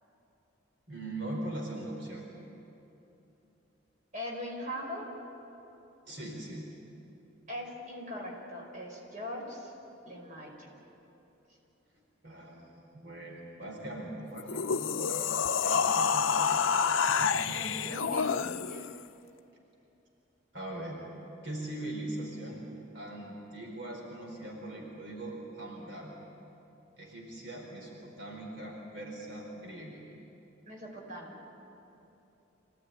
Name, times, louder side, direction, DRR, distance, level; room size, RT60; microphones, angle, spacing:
voice 1, 0.9-2.2 6.0-6.7 12.0-15.3 15.6-16.6 17.2-17.8 20.5-21.0 21.4-22.6 22.9-26.1 27.0-30.0, right 1 dB, 65° right, -1 dB, 4.6 m, -41 dB
voice 2, 4.1-5.1 7.5-9.7 10.0-10.7 17.5-18.4 18.6-18.9 30.7-31.4, left 1 dB, 40° right, -1 dB, 5.3 m, -40 dB
sound 1, 14.4-19.0, left 6 dB, 85° left, 0.6 m, -28 dB
27.0 x 18.0 x 9.9 m, 3.0 s
head